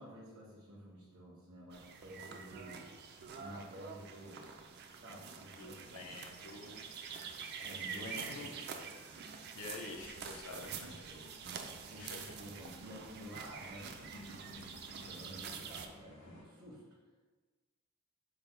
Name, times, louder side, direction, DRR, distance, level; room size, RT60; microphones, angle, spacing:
voice 1, 0.0-2.9 3.3-4.5 5.0-6.0 7.6-8.8 10.5-16.9, equal, 80° right, -7 dB, 1.0 m, -52 dB
sound 1, 1.7-15.9, right 6 dB, 50° right, 0.4 m, -47 dB
voice 2, 5.6-7.3 7.9-8.5 9.5-10.9 12.0-12.2, left 3 dB, 80° left, 1 dB, 0.7 m, -48 dB
sound 2, 9.6-16.4, left 1 dB, 55° left, 1.2 m, -59 dB
5.0 x 2.1 x 4.4 m, 1.3 s
head